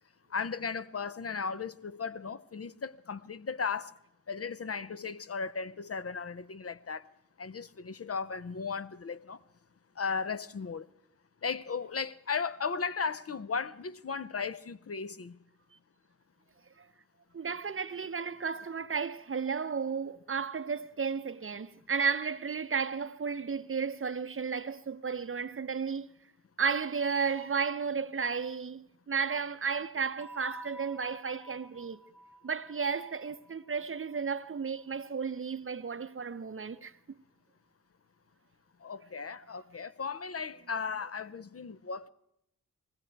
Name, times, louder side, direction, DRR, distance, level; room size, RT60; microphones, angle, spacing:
voice 1, 0.3-3.9 4.3-7.1 7.4-9.4 10.0-10.9 11.4-15.4 38.8-42.1, left 5 dB, 45° left, 0.6 m, -36 dB
voice 2, 17.3-26.1 26.6-32.0 32.4-36.9, right 5 dB, 40° right, 0.6 m, -33 dB
sound 1, 30.2-34.8, right 1 dB, 10° right, 1.3 m, -52 dB
20.5 x 15.0 x 4.6 m
cardioid pair, 50°, 34 cm